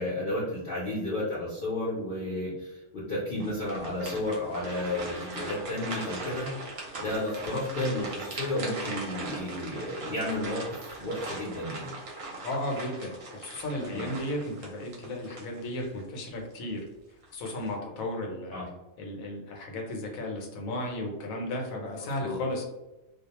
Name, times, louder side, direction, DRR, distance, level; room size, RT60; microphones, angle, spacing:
voice 1, 0.0-6.5 7.0-10.6 11.0-11.9 13.9-14.1 18.5-18.6 22.0-22.4, left 1 dB, 55° left, -7 dB, 0.7 m, -32 dB
sound 1, 3.4-16.0 16.5-16.6 17.2-17.7, right 2 dB, 60° right, 0.7 m, -40 dB
voice 2, 12.4-16.8 17.3-18.6 19.0-22.6, left 1 dB, 75° left, 1 dB, 1.0 m, -34 dB
2.3 x 2.2 x 2.8 m, 1.0 s
omnidirectional pair, 1.5 m